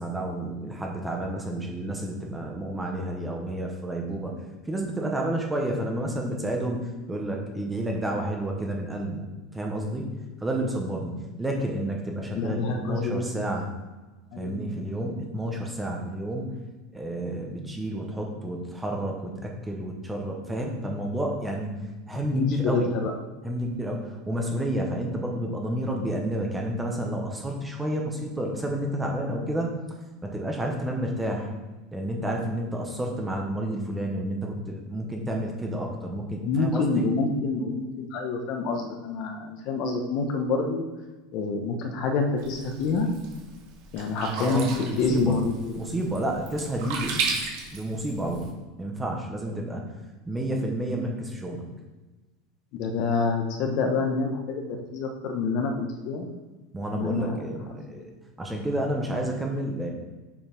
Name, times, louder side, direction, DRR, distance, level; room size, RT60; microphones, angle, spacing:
voice 1, 0.0-4.3 4.7-9.2 9.5-10.1 10.4-13.7 14.4-16.5 16.9-21.7 22.1-22.9 23.4-29.7 30.2-31.5 31.9-37.0 44.4-45.4 45.8-47.3 47.7-49.9 50.3-51.7 56.7-58.1 58.4-59.9, right 1 dB, 5° right, 1 dB, 0.9 m, -30 dB
voice 2, 12.3-13.4 14.3-14.6 22.3-23.1 36.4-40.8 41.3-43.1 43.9-45.6 52.7-56.3 56.9-57.4 57.9-58.1, left 4 dB, 40° left, 4 dB, 1.1 m, -27 dB
Sink (filling or washing), 42.4-48.5, right 5 dB, 55° right, 1.9 m, -35 dB
7.3 x 5.3 x 5.3 m, 1.2 s
supercardioid pair, 175°, 0 cm